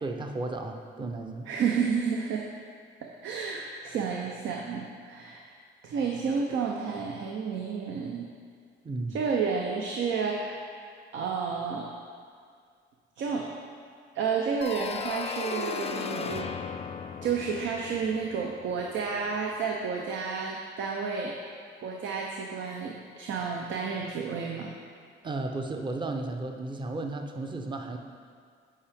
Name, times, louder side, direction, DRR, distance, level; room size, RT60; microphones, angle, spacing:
voice 1, 0.0-1.5 8.8-9.2 25.2-28.0, right 2 dB, 25° right, 4 dB, 0.6 m, -34 dB
voice 2, 1.5-2.5 3.0-5.5 5.8-8.3 9.1-10.6 11.1-11.9 13.2-13.5 14.1-16.5 17.2-21.4 21.8-24.7, right 5 dB, 75° right, 0 dB, 0.6 m, -31 dB
sound 1, 14.6-19.3, left 6 dB, 30° left, 0.3 m, -36 dB
8.5 x 4.7 x 3.5 m, 2.1 s
cardioid pair, 90°, 20 cm